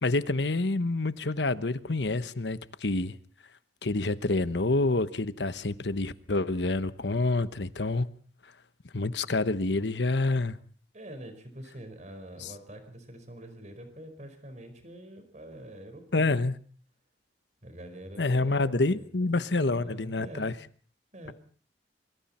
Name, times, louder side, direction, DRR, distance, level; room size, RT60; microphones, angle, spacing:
voice 1, 0.0-3.1 3.8-8.1 8.9-10.6 12.4-12.5 16.1-16.5 18.2-20.5, left 2 dB, 80° left, 1.1 m, -27 dB
voice 2, 10.9-16.4 17.6-19.0 19.3-20.5 21.1-21.3, right 1 dB, 40° right, 4.9 m, -45 dB
25.0 x 24.0 x 4.3 m
head